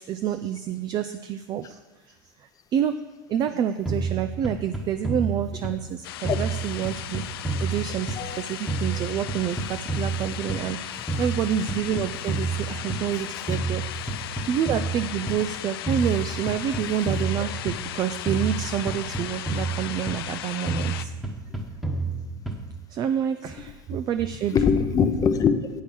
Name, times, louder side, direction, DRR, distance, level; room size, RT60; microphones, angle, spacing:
voice 1, 0.0-1.8 2.0-3.0 3.3-7.2 7.6-13.8 14.5-21.1 22.9-24.6, right 9 dB, 35° right, 10 dB, 0.4 m, -28 dB
sound 1, 3.9-5.9 6.2-8.4 8.7-10.8 11.1-13.2 13.5-15.5 15.9-18.0 18.3-20.4 20.7-22.8, right 3 dB, ahead, 1.1 m, -30 dB
sound 2, 6.0-21.0, left 12 dB, 80° left, 0.4 m, -36 dB
voice 2, 8.2-8.5 13.1-13.4 17.4-17.5 24.5-25.8, left 6 dB, 30° left, 9 dB, 0.7 m, -23 dB
8.2 x 5.5 x 6.1 m, 1.1 s
supercardioid pair, 115°, 12 cm